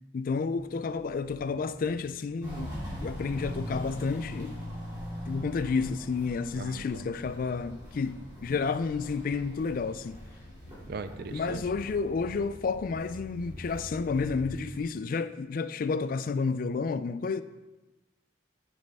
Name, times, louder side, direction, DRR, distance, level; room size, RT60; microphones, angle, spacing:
voice 1, 0.1-2.7 3.0-4.5 5.3-10.2 11.3-17.4, left 4 dB, 45° left, 0.3 m, -31 dB
sound 1, 0.6-14.3, left 2 dB, 75° left, 0.7 m, -52 dB
Walk footsteps, 2.4-14.8, equal, 25° right, 2.9 m, -42 dB
voice 2, 6.6-7.1 10.8-11.6, right 4 dB, 55° right, 0.4 m, -39 dB
8.2 x 6.4 x 3.5 m
head